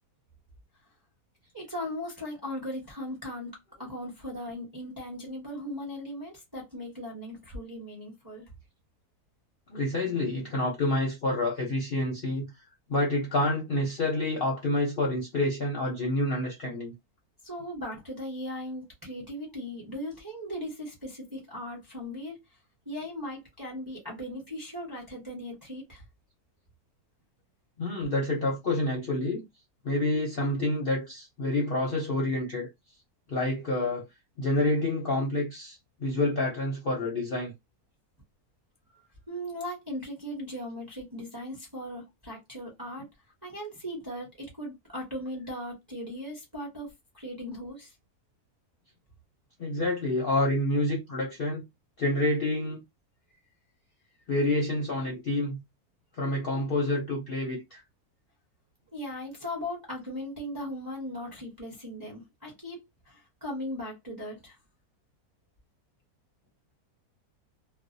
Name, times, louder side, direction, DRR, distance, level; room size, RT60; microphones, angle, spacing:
voice 1, 1.5-8.5 17.4-22.4 22.9-26.0 38.9-43.1 43.4-47.9 58.9-64.6, left 1 dB, 20° right, 0.6 m, -38 dB
voice 2, 9.7-12.5 12.9-16.9 27.8-29.4 29.8-32.7 33.3-34.0 34.4-37.5 49.6-51.6 52.0-52.8 54.3-55.6 56.2-57.8, left 2 dB, 55° left, 0.6 m, -28 dB
2.5 x 2.1 x 2.6 m
omnidirectional pair, 1.6 m